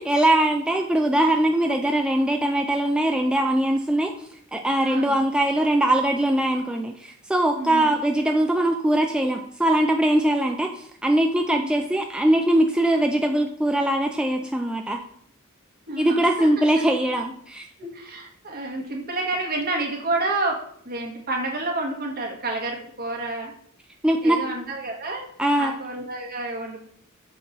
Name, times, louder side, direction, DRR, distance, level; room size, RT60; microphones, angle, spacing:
voice 1, 0.0-4.1 4.5-15.0 16.0-17.7 18.8-18.9 24.0-24.4 25.4-25.7, right 1 dB, 5° right, 3 dB, 0.3 m, -21 dB
voice 2, 4.8-5.2 7.5-7.9 11.5-11.7 15.9-16.7 17.8-20.6 20.8-23.5 24.2-25.2 25.5-26.8, right 2 dB, 45° right, 0 dB, 1.5 m, -29 dB
6.6 x 4.0 x 4.2 m, 0.64 s
head